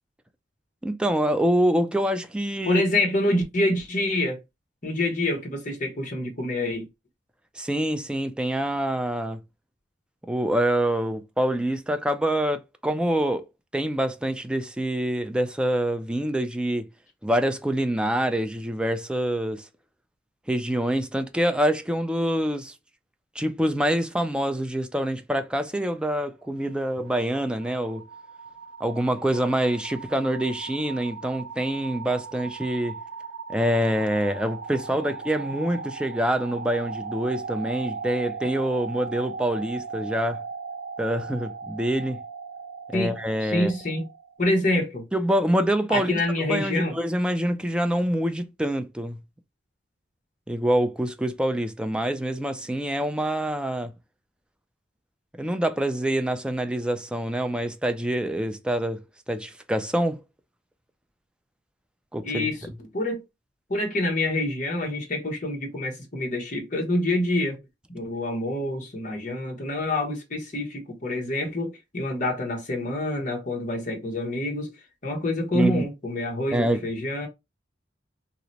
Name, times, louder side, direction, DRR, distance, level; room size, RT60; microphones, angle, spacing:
voice 1, 0.8-2.8 7.6-9.4 10.3-13.4 13.7-16.9 17.2-19.6 20.5-22.7 23.4-28.0 28.8-33.0 33.5-40.4 41.0-42.2 42.9-43.7 45.1-46.2 46.5-49.2 50.5-53.9 55.4-59.0 59.3-60.2 62.1-62.5 75.5-75.9 76.5-76.8, right 1 dB, 5° right, 0.3 m, -26 dB
voice 2, 2.6-4.4 4.8-6.9 42.9-43.1 43.4-44.1 44.4-45.1 45.9-47.0 62.2-63.2 63.7-67.6 67.9-74.7 75.0-77.3, left 1 dB, 45° left, 1.0 m, -26 dB
sound 1, 26.5-44.3, right 4 dB, 75° right, 0.6 m, -38 dB
2.9 x 2.1 x 3.9 m
head